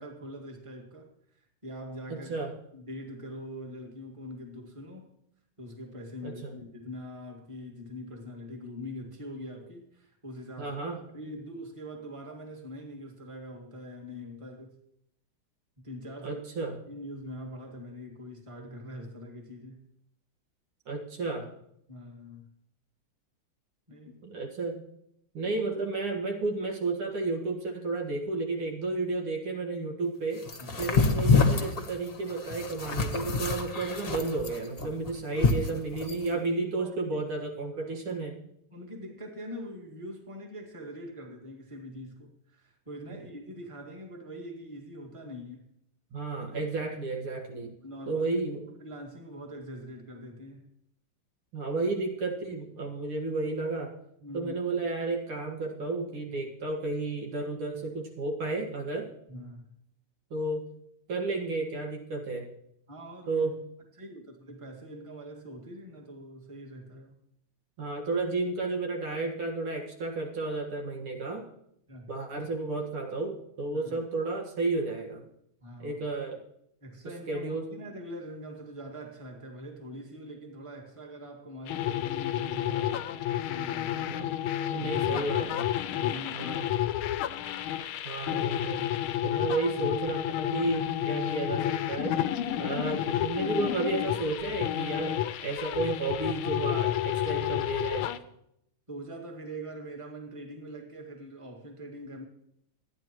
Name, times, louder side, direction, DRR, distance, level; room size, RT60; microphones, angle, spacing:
voice 1, 0.0-2.3 2.7-5.1 5.6-10.8 11.1-14.8 15.8-16.4 16.9-19.9 21.9-22.5 23.9-24.2 30.6-30.8 34.9-35.1 35.3-35.5 36.3-36.4 36.7-36.9 37.7-37.9 38.7-45.7 47.5-48.3 48.8-50.7 54.2-54.5 59.3-59.7 62.9-63.5 64.0-67.2 71.9-72.1 73.7-74.0 75.6-76.0 76.3-76.4 76.8-84.3 84.8-85.5 85.9-86.6 98.9-102.2, equal, 15° right, 0 dB, 1.9 m, -43 dB
voice 2, 10.6-11.0 16.2-16.7 20.9-21.5 24.2-24.8 25.3-30.4 30.8-38.4 46.1-47.7 48.1-48.6 51.5-53.9 54.3-59.1 60.3-60.7 61.1-62.5 63.3-63.6 67.8-71.4 72.1-75.2 75.8-76.4 77.3-77.7 84.1-84.3 84.7-85.7 86.3-86.7 88.0-88.9 89.2-92.2 92.6-95.2 95.4-98.1, right 3 dB, 85° right, 1 dB, 2.6 m, -32 dB
sound 1, 30.5-36.3, left 4 dB, 35° left, 1.0 m, -26 dB
sound 2, 81.7-98.2, left 12 dB, 85° left, 1.5 m, -30 dB
24.5 x 9.7 x 3.1 m, 0.74 s
omnidirectional pair, 2.3 m